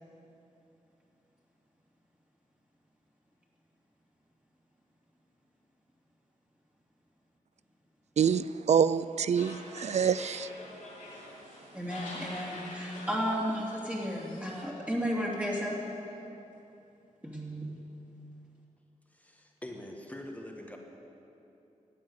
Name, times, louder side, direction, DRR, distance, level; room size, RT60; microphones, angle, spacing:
voice 1, 8.2-10.5, right 7 dB, 60° right, 16 dB, 0.4 m, -26 dB
sound 1, 9.3-14.6, left 2 dB, 75° left, 2.6 m, -46 dB
voice 2, 11.7-15.8 17.2-17.6, equal, 10° right, -4 dB, 2.7 m, -33 dB
voice 3, 19.1-20.8, left 1 dB, 10° left, 2 dB, 1.4 m, -44 dB
12.5 x 8.6 x 8.1 m, 2.8 s
cardioid pair, 80°, 13 cm